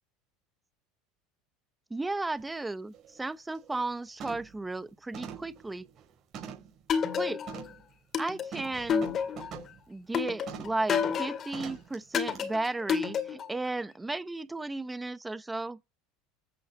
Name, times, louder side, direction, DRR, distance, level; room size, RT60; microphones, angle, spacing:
voice 1, 1.9-5.8 7.1-7.4 8.2-9.2 9.9-15.8, right 2 dB, 10° right, 0.9 m, -34 dB
sound 1, 2.4-2.5 2.9-3.2 3.6-3.9 4.2-4.6 5.1-6.8 7.5-7.8 8.5-9.8 10.5-10.8 11.5-12.0 12.3-12.4, right 7 dB, 45° right, 5.7 m, -44 dB
sound 2, 6.9-7.7 8.1-9.6 10.1-11.6 12.1-13.6, left 7 dB, 35° left, 2.1 m, -30 dB
13.5 x 8.4 x 8.1 m
supercardioid pair, 120°, 0 cm